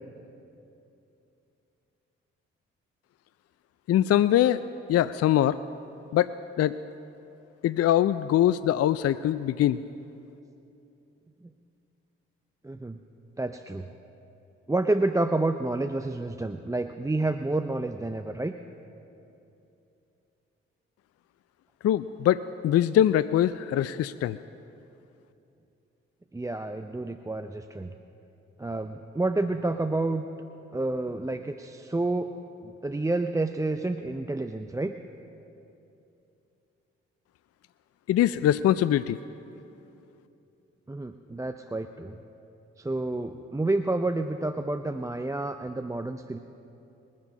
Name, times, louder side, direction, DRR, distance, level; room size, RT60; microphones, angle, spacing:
voice 1, 3.9-4.6 4.9-5.6 6.1-6.3 6.6-6.8 7.6-9.8 21.8-24.4 38.1-39.2, left 11 dB, 55° left, 15 dB, 0.4 m, -23 dB
voice 2, 12.6-13.0 13.4-13.9 14.7-18.5 26.3-27.9 28.6-30.3 30.7-32.3 32.6-34.9 40.9-42.2 42.8-46.4, right 2 dB, 10° right, 7 dB, 0.6 m, -29 dB
21.5 x 7.5 x 5.3 m, 2.8 s
hypercardioid pair, 45°, 30 cm